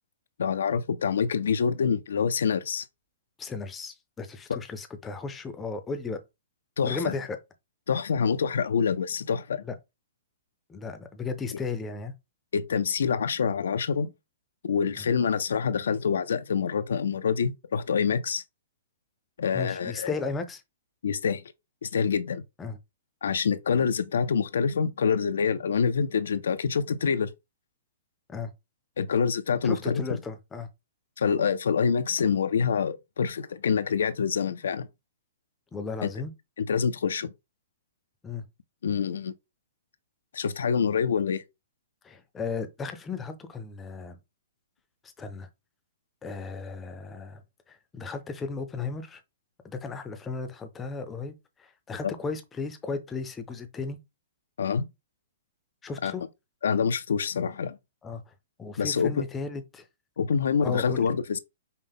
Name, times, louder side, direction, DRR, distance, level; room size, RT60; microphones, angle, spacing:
voice 1, 0.4-2.9 6.8-7.1 7.9-9.6 12.5-14.1 14.6-18.4 19.4-20.2 21.0-21.4 21.8-22.4 23.2-27.3 29.0-30.0 31.2-34.9 36.0-36.1 36.6-37.3 38.8-39.3 40.3-41.4 54.6-54.9 56.0-56.1 56.6-57.8 58.8-59.2 60.2-61.4, left 6 dB, 80° left, 0.4 m, -26 dB
voice 2, 3.4-6.2 6.8-7.4 9.6-9.8 10.7-12.1 15.0-15.1 19.5-20.6 22.6-22.8 28.3-28.5 29.6-30.7 35.7-36.3 38.2-38.4 42.0-44.2 45.2-45.5 46.2-47.4 47.7-49.2 49.7-54.0 55.8-56.2 57.5-57.6 58.0-58.3 58.6-59.8 60.6-61.0, left 4 dB, 10° left, 0.5 m, -35 dB
5.5 x 2.1 x 3.5 m
hypercardioid pair, 160°, 0 cm